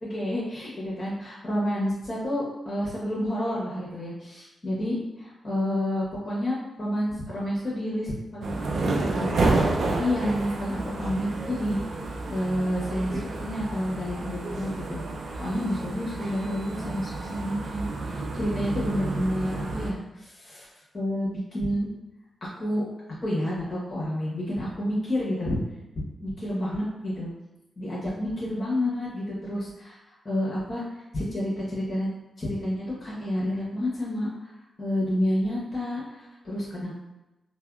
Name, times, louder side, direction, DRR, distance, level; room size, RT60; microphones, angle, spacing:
voice 1, 0.0-9.7 10.0-11.8 12.3-15.0 15.4-20.7 20.9-21.9 22.4-22.8 23.2-25.6 26.2-27.3 27.8-30.0 30.2-30.8 31.1-32.1 32.4-34.5 34.8-36.9, left 1 dB, 40° left, -7 dB, 1.1 m, -29 dB
sound 1, 8.4-19.9, right 2 dB, 70° right, 0.4 m, -30 dB
3.4 x 2.2 x 2.3 m, 1.0 s
cardioid pair, 55°, 0 cm